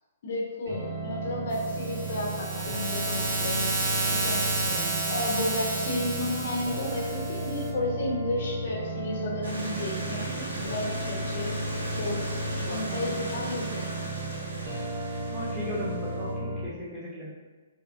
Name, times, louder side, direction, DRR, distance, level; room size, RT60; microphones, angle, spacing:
voice 1, 0.2-4.4 5.1-11.7 12.0-12.3 12.7-13.9, left 2 dB, 50° left, -2 dB, 0.5 m, -32 dB
sound 1, 0.7-16.6, right 1 dB, 65° right, 1.1 m, -34 dB
sound 2, 1.5-7.7, right 3 dB, 30° right, 0.4 m, -31 dB
sound 3, 9.4-16.3, right 1 dB, 85° right, 0.8 m, -38 dB
voice 2, 15.3-17.3, equal, ahead, -11 dB, 0.8 m, -37 dB
2.7 x 2.4 x 2.3 m, 1.3 s
hypercardioid pair, 165°, 0 cm